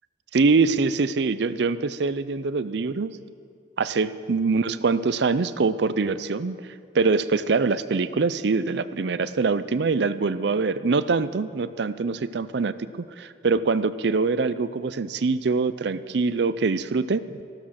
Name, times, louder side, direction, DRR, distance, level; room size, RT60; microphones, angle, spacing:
voice 1, 0.3-3.2 3.8-6.6 6.9-17.4, right 4 dB, 60° right, 14 dB, 0.5 m, -24 dB
13.5 x 13.0 x 6.4 m, 2.3 s
head